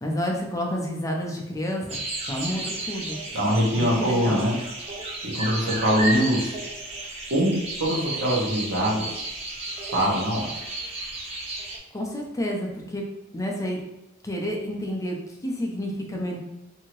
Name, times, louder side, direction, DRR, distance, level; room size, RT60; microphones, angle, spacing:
voice 1, 0.0-3.2 3.8-4.5 11.9-13.0 13.3-13.8 14.2-15.2 15.4-16.4, equal, 15° left, 0 dB, 0.4 m, -30 dB
sound 1, 1.9-11.8, right 2 dB, 30° right, 0.6 m, -33 dB
voice 2, 3.3-4.5 5.3-6.6 7.3-9.0 9.9-10.5, equal, 60° right, -4 dB, 0.9 m, -23 dB
2.7 x 2.7 x 3.0 m, 0.98 s
head